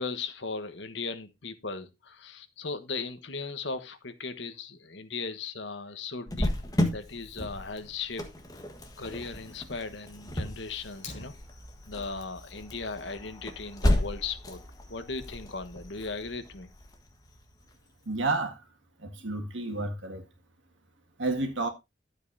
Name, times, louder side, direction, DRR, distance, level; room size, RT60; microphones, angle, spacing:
voice 1, 0.0-6.5 6.9-8.2 9.0-11.3 11.9-14.6 14.9-16.7, left 4 dB, 70° left, 1.3 m, -37 dB
Cricket, 6.3-17.7, left 1 dB, 20° left, 1.5 m, -33 dB
Fire, 10.9-11.9, left 3 dB, 40° left, 4.2 m, -45 dB
voice 2, 18.1-18.6 19.0-20.2 21.2-21.7, right 2 dB, 80° right, 2.0 m, -30 dB
12.5 x 8.1 x 2.7 m
head